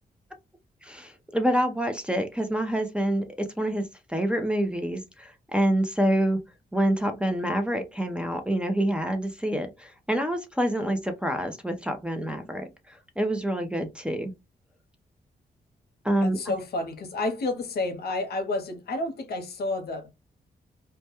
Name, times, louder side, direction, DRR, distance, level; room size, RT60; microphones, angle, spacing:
voice 1, 0.8-6.4 6.7-14.3 16.0-16.4, right 1 dB, 5° right, 0.4 m, -27 dB
voice 2, 16.2-20.1, left 2 dB, 70° left, 0.7 m, -30 dB
2.2 x 2.1 x 2.8 m
cardioid pair, 105°, 17 cm